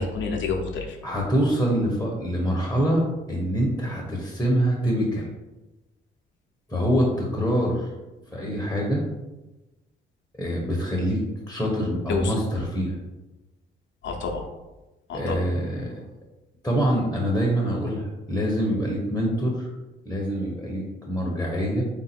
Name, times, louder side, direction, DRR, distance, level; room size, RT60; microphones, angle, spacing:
voice 1, 0.0-1.0 12.1-12.3 14.0-14.4 15.1-15.5, left 4 dB, 70° left, 2 dB, 0.7 m, -28 dB
voice 2, 1.0-5.3 6.7-7.9 8.3-9.0 10.4-13.0 15.1-15.9 16.6-19.7 20.0-21.8, equal, 5° left, -2 dB, 0.9 m, -25 dB
3.6 x 2.6 x 4.3 m, 1.1 s
cardioid pair, 90°, 20 cm